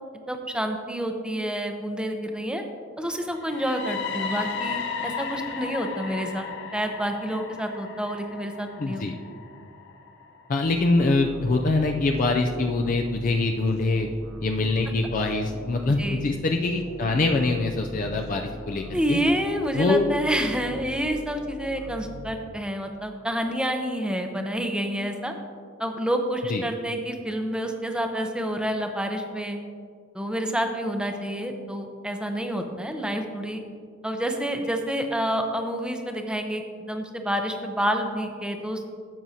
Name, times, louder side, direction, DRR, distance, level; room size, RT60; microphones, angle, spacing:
voice 1, 0.3-2.6 3.0-6.5 6.7-9.0 16.0-16.2 18.9-25.3 25.8-29.6 30.1-33.6 34.0-38.9, equal, 5° right, 4 dB, 0.6 m, -28 dB
sound 1, 3.3-11.2, left 5 dB, 60° left, 0.8 m, -35 dB
voice 2, 8.8-9.1 10.5-14.1 14.4-19.2 19.7-20.1 26.5-26.6, left 3 dB, 40° left, 3 dB, 0.4 m, -24 dB
sound 2, 10.6-22.9, equal, 70° right, 1.5 m, -42 dB
12.0 x 7.5 x 2.8 m, 2.2 s
head